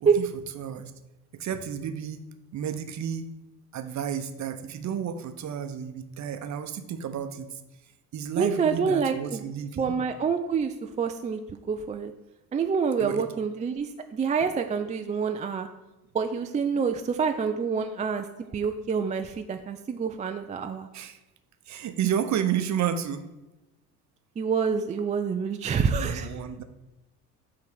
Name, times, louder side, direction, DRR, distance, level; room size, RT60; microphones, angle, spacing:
voice 1, 0.5-0.9 1.4-2.2 2.5-3.3 3.7-7.6 8.1-9.9 13.0-13.2 20.9-21.2 21.7-23.3 25.9-26.6, right 9 dB, 35° right, 9 dB, 0.9 m, -31 dB
voice 2, 8.4-9.4 9.8-12.1 12.5-15.7 16.1-18.3 18.5-20.9 24.4-26.3, right 6 dB, 15° right, 6 dB, 0.4 m, -27 dB
8.5 x 3.8 x 6.3 m, 1.0 s
figure-of-eight pair, 60°, 47 cm